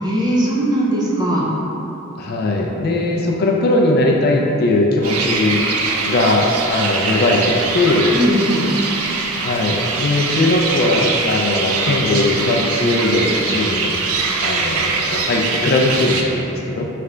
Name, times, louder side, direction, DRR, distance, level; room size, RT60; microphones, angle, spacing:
voice 1, 0.0-1.5 8.1-8.7, right 1 dB, 20° right, -5 dB, 0.5 m, -19 dB
voice 2, 2.2-5.6 6.1-8.1 9.3-14.0 14.4-16.9, left 2 dB, 45° left, -1 dB, 0.4 m, -19 dB
sound 1, 5.0-16.2, right 4 dB, 85° right, 0.4 m, -22 dB
3.3 x 3.3 x 3.7 m, 3.0 s
head